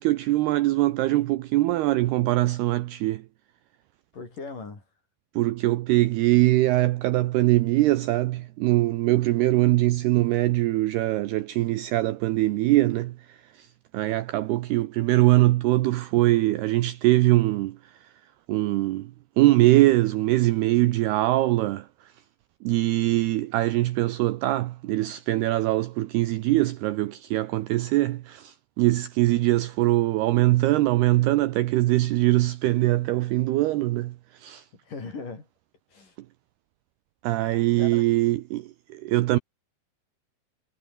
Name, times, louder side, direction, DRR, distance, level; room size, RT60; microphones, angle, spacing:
voice 1, 0.0-3.2 5.4-13.7 13.9-17.8 18.5-19.1 19.4-21.9 22.6-34.6 37.2-39.4, right 17 dB, 80° right, 2.4 m, -22 dB
voice 2, 4.1-4.8 9.4-9.8 34.8-35.5 35.9-36.2 37.8-38.1, left 4 dB, 45° left, 7.9 m, -39 dB
omnidirectional pair, 5.4 m